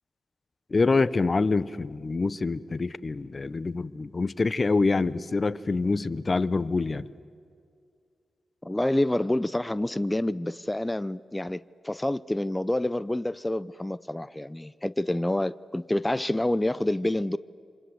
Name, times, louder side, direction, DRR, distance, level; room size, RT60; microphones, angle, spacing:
voice 1, 0.7-7.0, left 3 dB, 45° left, 1.0 m, -26 dB
voice 2, 8.6-17.4, left 1 dB, 15° left, 0.7 m, -28 dB
29.0 x 26.0 x 7.9 m
supercardioid pair, 40°, 0 cm